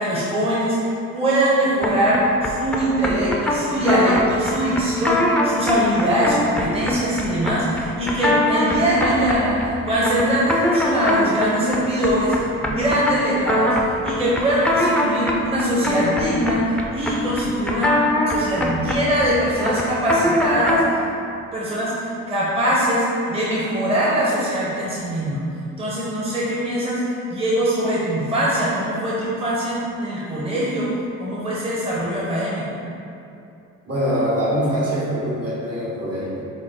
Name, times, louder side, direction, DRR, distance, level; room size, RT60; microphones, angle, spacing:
voice 1, 0.0-18.0 18.3-21.0 21.5-25.4 25.8-30.9 31.2-32.8, equal, 20° right, -7 dB, 0.8 m, -22 dB
sound 1, 1.8-21.0, left 1 dB, 5° left, 0.4 m, -23 dB
voice 2, 33.9-36.5, equal, 55° right, -6 dB, 1.4 m, -23 dB
6.2 x 2.1 x 3.6 m, 2.6 s
cardioid pair, 90°, 30 cm